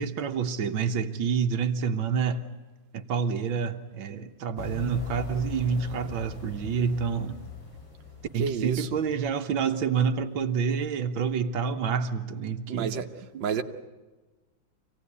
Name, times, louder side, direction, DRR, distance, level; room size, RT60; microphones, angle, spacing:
voice 1, 0.0-2.4 2.9-7.4 8.3-13.1 13.3-13.6, right 6 dB, 85° right, 6 dB, 1.9 m, -28 dB
sound 1, 4.6-9.3, left 5 dB, 75° left, 4.5 m, -41 dB
voice 2, 8.4-8.9 12.7-13.1 13.4-13.6, right 7 dB, 65° right, 4 dB, 1.7 m, -29 dB
26.0 x 17.5 x 9.8 m, 1.2 s
omnidirectional pair, 2.1 m